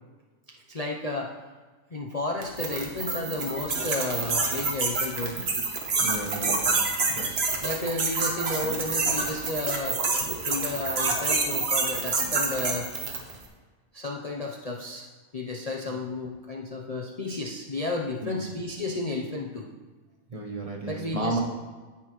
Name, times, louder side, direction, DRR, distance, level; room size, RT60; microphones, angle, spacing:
voice 1, 0.5-1.4 1.9-5.4 7.6-10.0 10.5-12.9 13.9-15.1 15.3-19.7 20.9-21.4, left 2 dB, 40° left, -2 dB, 0.5 m, -32 dB
sound 1, 2.4-13.4, right 3 dB, 50° right, 1.3 m, -27 dB
voice 2, 6.0-6.8 7.2-7.4 15.9-16.0 18.2-18.4 20.3-21.4, right 1 dB, 30° right, 1 dB, 1.0 m, -33 dB
15.5 x 5.8 x 3.0 m, 1.4 s
omnidirectional pair, 1.5 m